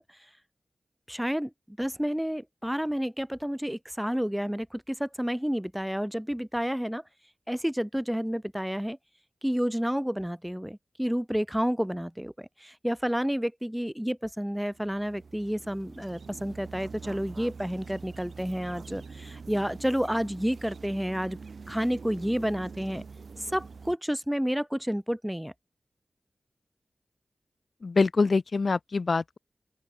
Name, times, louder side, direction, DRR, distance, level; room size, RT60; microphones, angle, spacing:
voice 1, 1.1-7.0 7.5-9.0 9.4-21.4 21.7-23.0 23.4-25.5, equal, 5° right, 1.2 m, -30 dB
sound 1, 14.6-24.0, right 5 dB, 75° right, 2.5 m, -45 dB
voice 2, 27.8-29.4, left 4 dB, 60° left, 0.3 m, -25 dB
open air
cardioid pair, 60°, 0 cm